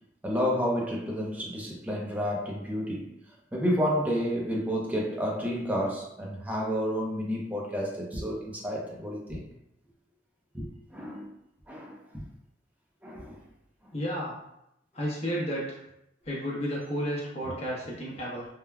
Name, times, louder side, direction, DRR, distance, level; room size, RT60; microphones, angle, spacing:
voice 1, 0.2-3.1 3.5-9.5 10.5-11.3 11.7-12.2 13.0-13.4 17.4-17.6, equal, 10° right, -2 dB, 0.5 m, -30 dB
voice 2, 13.9-14.4 14.9-15.8 16.3-18.5, equal, 35° left, -5 dB, 0.9 m, -32 dB
3.2 x 2.1 x 2.2 m, 0.82 s
head